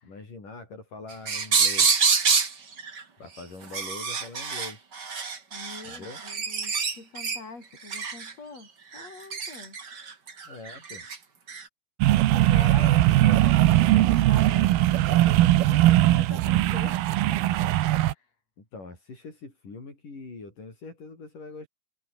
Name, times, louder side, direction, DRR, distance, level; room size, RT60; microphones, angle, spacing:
voice 1, 0.0-2.0 3.2-4.9 5.8-6.2 10.4-11.1 12.5-13.0 18.6-21.7, left 3 dB, 60° left, 8.9 m, -43 dB
sound 1, 1.1-2.5 2.8-3.0 3.6-7.4 7.9-8.3 8.9-11.2 11.5-11.6, right 5 dB, 30° right, 2.6 m, -26 dB
voice 2, 5.5-9.8 12.3-17.8 18.1-18.3, left 4 dB, 45° left, 8.6 m, -44 dB
sound 2, 12.0-18.1, right 15 dB, 85° right, 2.9 m, -20 dB
omnidirectional pair, 4.3 m